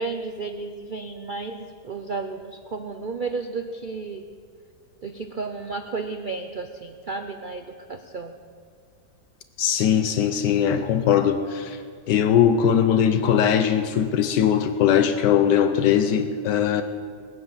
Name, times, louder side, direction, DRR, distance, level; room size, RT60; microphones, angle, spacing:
voice 1, 0.0-4.3 5.0-8.4, right 4 dB, 80° right, 7 dB, 0.4 m, -33 dB
voice 2, 9.6-11.8 12.1-16.8, left 9 dB, 80° left, 9 dB, 1.3 m, -20 dB
19.5 x 9.7 x 7.1 m, 2.1 s
omnidirectional pair, 1.8 m